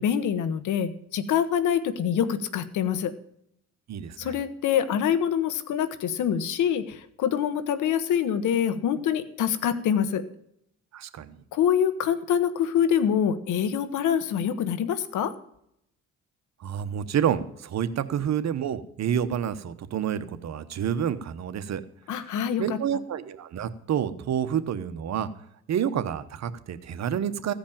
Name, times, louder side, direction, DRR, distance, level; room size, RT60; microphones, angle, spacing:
voice 1, 0.0-3.1 4.2-10.2 11.5-15.3 22.1-22.8, left 8 dB, 80° left, 12 dB, 1.2 m, -25 dB
voice 2, 3.9-4.3 10.9-11.4 16.6-21.8 22.6-25.3 25.7-27.5, right 9 dB, 60° right, 11 dB, 1.1 m, -28 dB
15.5 x 5.2 x 8.7 m, 0.74 s
cardioid pair, 90°, 30 cm